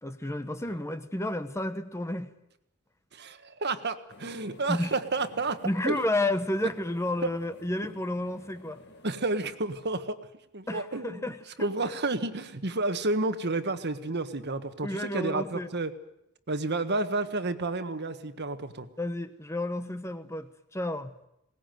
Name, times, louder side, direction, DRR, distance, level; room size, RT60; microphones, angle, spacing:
voice 1, 0.0-2.3 4.7-4.9 5.6-8.8 10.7-11.4 14.8-15.7 19.0-21.2, left 1 dB, 15° left, 10 dB, 0.9 m, -31 dB
voice 2, 3.1-5.6 5.8-6.0 7.2-7.3 9.0-10.2 10.5-11.2 11.6-15.9 16.5-18.9, right 2 dB, 50° right, 10 dB, 1.5 m, -30 dB
sound 1, 4.1-9.1, left 2 dB, 50° left, 2.2 m, -53 dB
21.5 x 19.0 x 9.2 m, 0.83 s
head